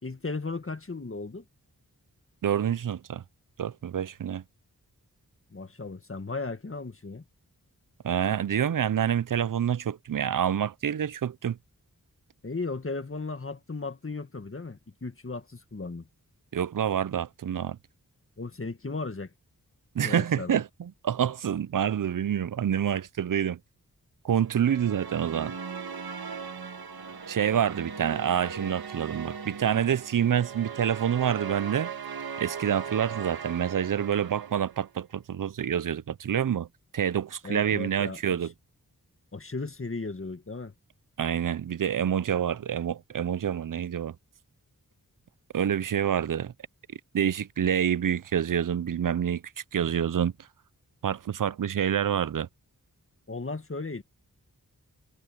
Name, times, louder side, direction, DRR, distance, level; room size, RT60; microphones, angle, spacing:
voice 1, 0.0-1.4 5.5-7.2 12.4-16.1 18.4-19.3 20.0-20.6 37.4-38.4 39.3-40.7 53.3-54.0, left 3 dB, 35° left, 1.8 m, -36 dB
voice 2, 2.4-3.2 3.6-4.4 8.0-11.6 16.5-17.8 19.9-23.6 24.2-25.5 27.3-31.9 32.4-36.7 36.9-38.5 41.2-44.1 45.5-46.5 47.1-49.4 49.7-50.3 51.0-52.5, right 9 dB, 60° right, 0.6 m, -27 dB
sound 1, 24.5-34.9, right 6 dB, 80° right, 1.7 m, -39 dB
wide cardioid pair, 65°, 37 cm